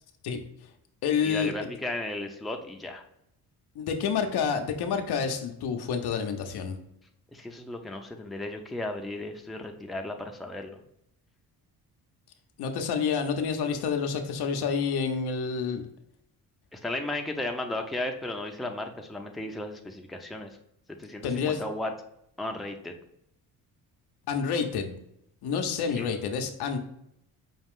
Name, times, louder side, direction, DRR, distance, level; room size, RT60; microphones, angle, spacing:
voice 1, 0.2-0.7 1.0-1.7 3.7-6.8 12.6-15.8 21.2-21.6 24.2-25.0 25.4-26.8, left 6 dB, 75° left, 5 dB, 0.7 m, -29 dB
voice 2, 1.2-3.0 7.3-10.8 16.7-20.5 21.0-21.9 22.4-22.9 26.0-26.1, left 1 dB, ahead, 2 dB, 0.5 m, -35 dB
5.4 x 2.4 x 3.6 m, 0.76 s
cardioid pair, 75°, 39 cm